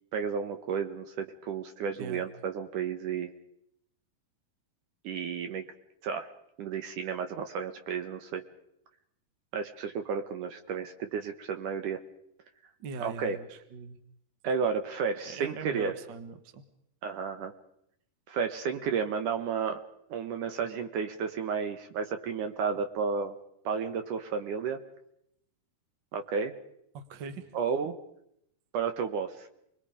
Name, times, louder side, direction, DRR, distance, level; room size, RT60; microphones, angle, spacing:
voice 1, 0.1-3.3 5.0-5.7 6.0-6.3 6.6-8.4 9.5-12.0 13.0-13.4 14.4-16.0 17.0-17.5 18.3-19.8 20.1-23.3 23.7-24.8 26.1-26.5 27.5-28.0 28.7-29.5, right 6 dB, 65° right, 7 dB, 2.4 m, -32 dB
voice 2, 12.8-14.0 15.2-16.6 26.9-27.5, right 4 dB, 45° right, 9 dB, 1.5 m, -41 dB
28.5 x 21.5 x 5.1 m, 0.77 s
omnidirectional pair, 4.4 m